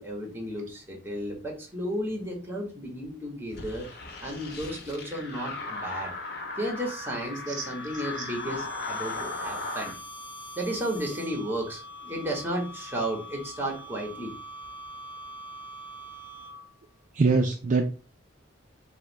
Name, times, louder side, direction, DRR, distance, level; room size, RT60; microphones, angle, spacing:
voice 1, 0.0-3.9 4.2-6.1 6.6-9.9 10.6-14.3, right 1 dB, 10° right, 1 dB, 1.2 m, -33 dB
sound 1, 3.5-10.0, left 3 dB, 55° left, 1.0 m, -37 dB
sound 2, 6.5-16.9, equal, 25° left, 0.6 m, -44 dB
voice 2, 17.1-17.9, right 4 dB, 40° right, 3 dB, 0.4 m, -23 dB
5.3 x 2.1 x 3.9 m, 0.37 s
head